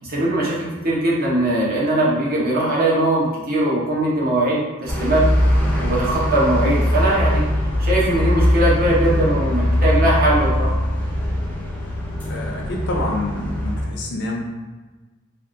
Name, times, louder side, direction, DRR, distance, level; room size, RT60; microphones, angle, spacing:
voice 1, 0.0-5.2 5.8-7.4 7.8-10.7, right 1 dB, 45° right, -6 dB, 0.8 m, -20 dB
sound 1, 4.9-13.9, equal, 10° left, 0.5 m, -21 dB
voice 2, 12.2-14.4, left 1 dB, 60° left, 0 dB, 0.5 m, -27 dB
3.5 x 2.3 x 2.6 m, 1.3 s
head